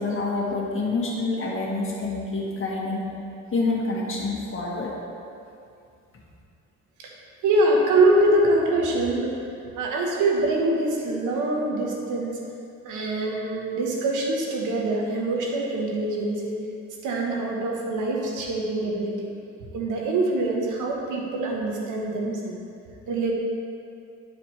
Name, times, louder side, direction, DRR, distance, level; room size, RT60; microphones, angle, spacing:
voice 1, 0.0-3.0 3.5-4.9, left 3 dB, 45° left, -4 dB, 1.8 m, -27 dB
voice 2, 7.4-9.4 9.8-12.4 12.8-16.6 17.0-19.2 19.7-22.5 23.1-23.3, right 2 dB, 85° right, -1 dB, 1.2 m, -24 dB
10.5 x 4.9 x 3.3 m, 2.5 s
cardioid pair, 90°, 30 cm